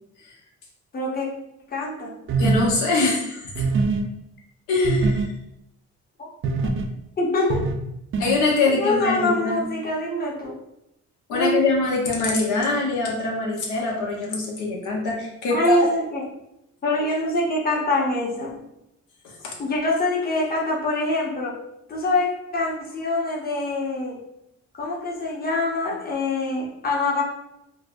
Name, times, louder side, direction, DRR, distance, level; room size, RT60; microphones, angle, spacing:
voice 1, 0.9-1.3 1.7-2.2 6.2-6.3 6.6-6.7 7.2-7.6 8.6-10.6 11.3-11.6 15.5-16.3 16.8-18.6 19.6-21.6 21.9-24.2 24.7-27.2, left 2 dB, 30° left, -2 dB, 0.9 m, -24 dB
sound 1, 2.3-2.7 3.6-4.0 4.8-5.3 6.4-6.8 7.5-7.8 8.1-8.4, right 4 dB, 45° right, 0.5 m, -22 dB
voice 2, 2.4-3.4 4.7-5.2 8.2-9.7 11.3-15.7 19.4-19.5, left 3 dB, 90° left, -2 dB, 0.9 m, -23 dB
4.5 x 2.1 x 2.5 m, 0.83 s
cardioid pair, 90°, 30 cm